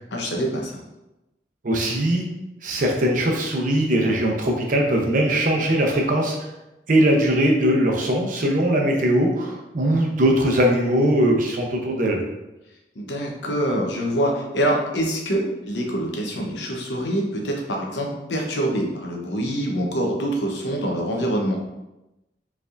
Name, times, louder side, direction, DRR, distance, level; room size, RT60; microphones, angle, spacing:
voice 1, 0.1-0.8 13.0-21.6, right 1 dB, 80° left, 0 dB, 0.8 m, -25 dB
voice 2, 1.6-2.3 2.6-6.4 6.9-12.2, right 1 dB, 50° right, 1 dB, 0.7 m, -20 dB
4.6 x 3.4 x 2.5 m, 0.97 s
head